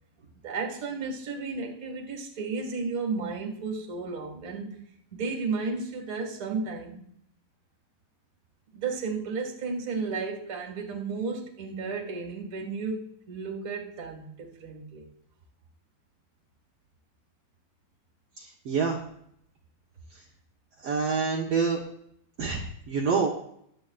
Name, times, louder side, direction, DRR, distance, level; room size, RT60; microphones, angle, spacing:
voice 1, 0.4-4.7 5.1-7.0 8.7-15.1, right 4 dB, 35° right, 1 dB, 1.4 m, -33 dB
voice 2, 18.4-19.0 20.8-21.8 22.4-23.3, right 5 dB, 75° right, -2 dB, 1.4 m, -27 dB
21.5 x 7.9 x 2.4 m, 0.70 s
omnidirectional pair, 4.3 m